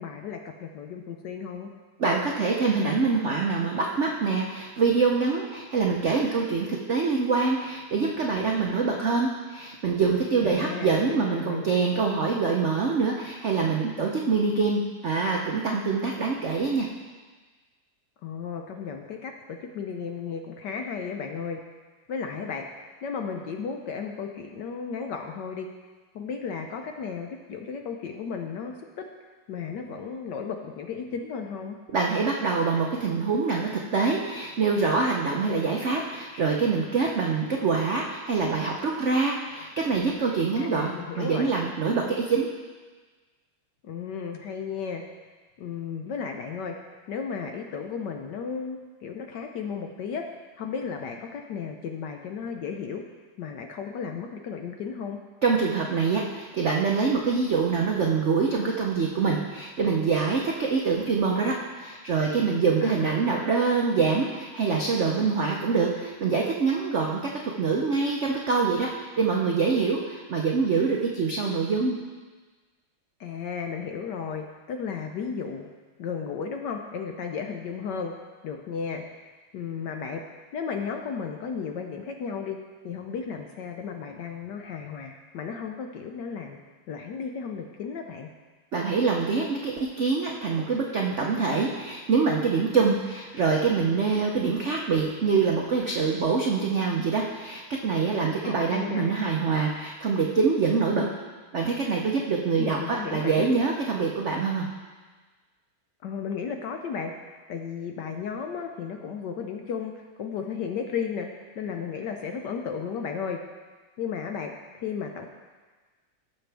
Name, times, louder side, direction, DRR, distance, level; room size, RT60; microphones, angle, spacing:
voice 1, 0.0-1.7 10.4-11.7 18.2-21.6 22.1-22.6 23.0-25.7 26.1-29.0 29.5-31.8 40.6-41.5 43.8-45.0 45.6-46.8 47.1-50.2 50.6-53.0 53.4-55.2 62.8-63.3 73.2-75.7 76.0-78.1 78.4-79.0 79.5-80.2 80.5-82.6 82.8-86.6 86.9-88.3 98.4-99.1 102.6-103.5 106.0-111.3 111.5-113.4 114.0-114.5 114.8-115.3, left 6 dB, 70° left, 4 dB, 1.1 m, -34 dB
voice 2, 2.0-16.9 31.9-42.5 55.4-72.0 88.7-101.1 101.5-104.7, right 4 dB, 90° right, -1 dB, 0.6 m, -25 dB
16.5 x 6.7 x 3.4 m, 1.4 s
omnidirectional pair, 2.4 m